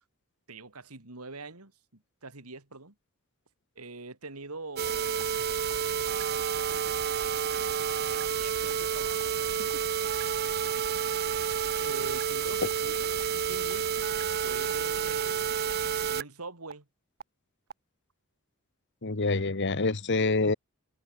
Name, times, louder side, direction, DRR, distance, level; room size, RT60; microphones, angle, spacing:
voice 1, 0.5-2.9 3.7-5.4 7.9-9.8 11.8-14.0 14.4-16.9 19.1-19.5, right 3 dB, 90° right, 3.1 m, -44 dB
sound 1, 4.8-16.2 16.7-16.8 17.2-17.3 17.7-17.8, right 7 dB, 45° right, 0.6 m, -30 dB
voice 2, 19.0-20.5, left 3 dB, 55° left, 1.4 m, -26 dB
head